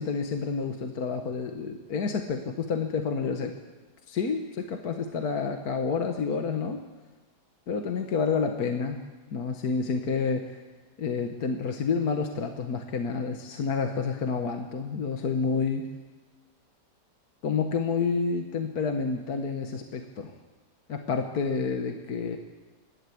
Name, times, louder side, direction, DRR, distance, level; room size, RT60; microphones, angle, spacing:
voice 1, 0.0-3.6 4.1-6.8 7.7-9.0 9.3-10.6 11.0-15.9 17.4-20.3 20.9-22.4, left 5 dB, 60° left, 4 dB, 1.8 m, -29 dB
28.5 x 12.0 x 8.5 m, 1.3 s
omnidirectional pair, 1.9 m